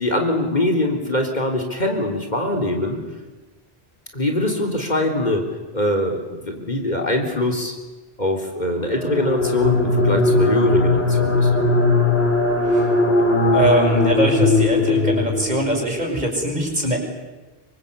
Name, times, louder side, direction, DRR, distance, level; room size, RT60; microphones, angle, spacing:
voice 1, 0.0-3.0 4.1-5.4 5.7-7.7 8.2-11.5, left 1 dB, 45° left, 2 dB, 3.9 m, -22 dB
sound 1, 8.9-15.8, left 2 dB, 75° left, 4.0 m, -19 dB
voice 2, 13.5-17.1, equal, 45° right, 1 dB, 6.6 m, -22 dB
26.5 x 24.5 x 8.4 m, 1.2 s
omnidirectional pair, 1.1 m